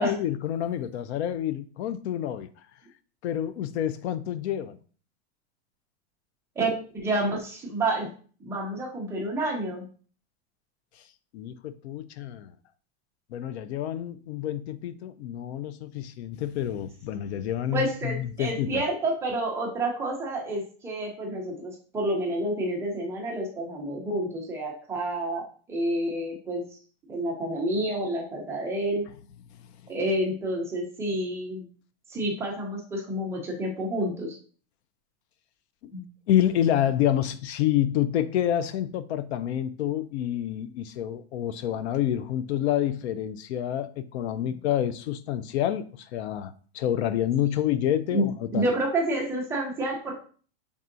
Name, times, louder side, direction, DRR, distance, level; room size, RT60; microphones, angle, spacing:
voice 1, 0.0-2.5 3.2-4.8 11.3-12.6 13.3-18.8 36.3-48.7, left 11 dB, 75° left, 0.5 m, -28 dB
voice 2, 6.6-8.1 8.4-9.9 17.7-26.6 27.1-29.1 29.9-31.7 32.1-34.4 35.9-36.0 48.1-50.2, right 1 dB, 10° right, 0.5 m, -29 dB
5.5 x 3.6 x 2.5 m
supercardioid pair, 170°, 33 cm